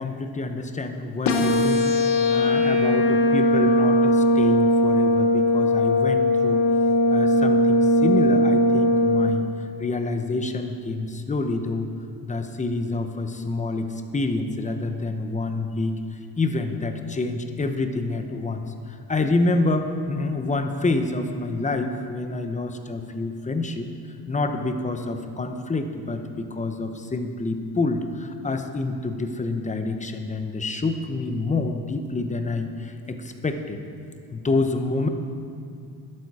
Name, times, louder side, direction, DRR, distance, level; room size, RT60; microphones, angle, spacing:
voice 1, 0.0-1.9 2.3-6.6 7.1-9.5 9.8-11.9 12.2-16.0 16.4-23.9 24.3-33.8 34.3-35.1, left 3 dB, 20° left, 6 dB, 0.8 m, -27 dB
sound 1, 1.2-9.3, left 1 dB, 75° left, 1.3 m, -19 dB
12.5 x 12.0 x 4.8 m, 2.4 s
cardioid pair, 135°, 40 cm